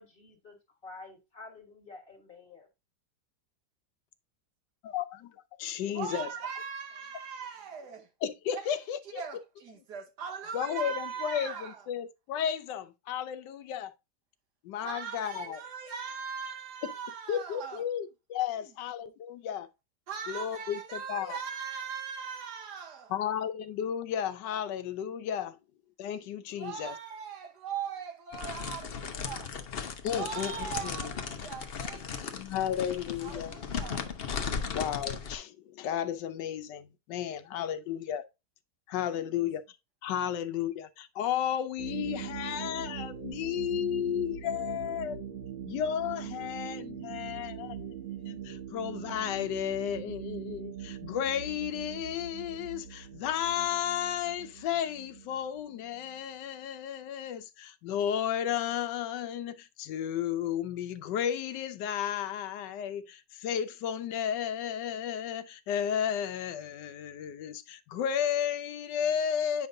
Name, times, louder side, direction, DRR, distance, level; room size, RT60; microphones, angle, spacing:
voice 1, 0.0-2.7, left 3 dB, 35° left, 1.6 m, -49 dB
voice 2, 4.8-5.3 5.6-6.3 8.2-9.2 10.5-13.9 14.6-15.6 16.8-16.9 17.3-19.7 20.3-21.4 23.1-25.6 26.0-26.9 30.0-31.1 32.3-33.6 34.7-38.2 38.9-39.6 40.0-45.2 45.6-47.8 48.3-69.7, left 9 dB, 85° left, 1.3 m, -33 dB
voice 3, 5.9-8.1 8.5-8.7 9.2-11.8 14.8-17.8 18.6-18.7 20.1-23.1 26.5-29.5 30.1-32.4 33.2-34.1 34.5-34.8 39.2-39.5, right 7 dB, 75° right, 1.6 m, -40 dB
sound 1, 28.3-35.4, left 6 dB, 55° left, 0.7 m, -37 dB
sound 2, 41.8-56.2, right 8 dB, 45° right, 1.1 m, -42 dB
8.6 x 5.2 x 2.6 m
omnidirectional pair, 1.8 m